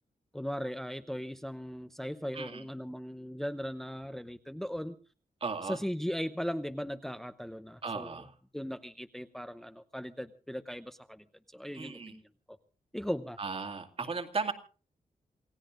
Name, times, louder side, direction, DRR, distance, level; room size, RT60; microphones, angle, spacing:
voice 1, 0.3-5.0 5.6-8.1 8.5-11.2 11.5-12.2 12.9-13.4, equal, 5° left, 9 dB, 0.8 m, -38 dB
voice 2, 2.3-2.6 5.4-5.8 7.8-8.3 11.7-12.2 13.4-14.5, right 4 dB, 40° right, 7 dB, 2.2 m, -36 dB
28.0 x 18.0 x 2.5 m, 0.39 s
wide cardioid pair, 150°, 14 cm